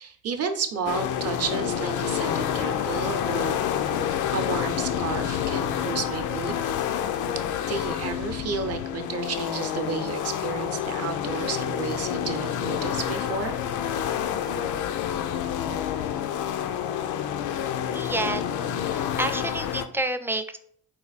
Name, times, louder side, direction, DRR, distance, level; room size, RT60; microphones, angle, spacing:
voice 1, 0.0-3.9 4.3-6.6 7.6-13.5, right 5 dB, 55° right, 7 dB, 0.7 m, -32 dB
sound 1, 0.9-19.9, left 9 dB, 80° left, 0.4 m, -28 dB
voice 2, 17.9-18.4 18.9-20.6, right 2 dB, 10° right, 9 dB, 0.3 m, -29 dB
4.1 x 2.6 x 4.0 m, 0.64 s
cardioid pair, 90°, 30 cm